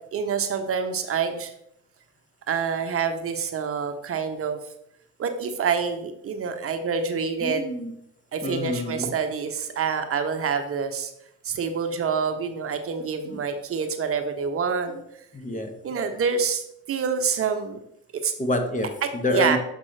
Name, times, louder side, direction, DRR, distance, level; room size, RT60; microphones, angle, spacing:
voice 1, 0.1-1.5 2.5-4.6 5.2-7.6 8.3-11.1 11.4-15.0 15.8-16.6 16.9-17.8 18.2-18.3 19.3-19.6, right 6 dB, 45° right, 7 dB, 0.9 m, -26 dB
voice 2, 7.4-8.0 8.4-9.2 13.2-13.4 14.9-15.0 15.3-15.7 18.4-19.6, left 1 dB, 25° left, 6 dB, 1.1 m, -28 dB
7.3 x 5.2 x 3.3 m, 0.76 s
supercardioid pair, 75°, 31 cm